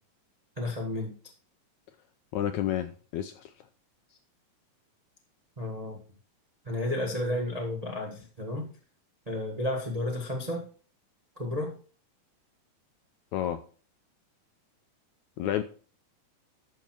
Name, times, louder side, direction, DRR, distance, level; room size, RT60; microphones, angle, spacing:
voice 1, 0.6-1.1 5.6-6.0 6.6-8.7 9.3-10.7 11.4-11.7, left 1 dB, 85° right, 1 dB, 0.3 m, -32 dB
voice 2, 2.3-3.5 13.3-13.6 15.4-15.6, left 11 dB, 80° left, 9 dB, 1.7 m, -30 dB
12.5 x 6.1 x 4.5 m, 0.39 s
omnidirectional pair, 3.9 m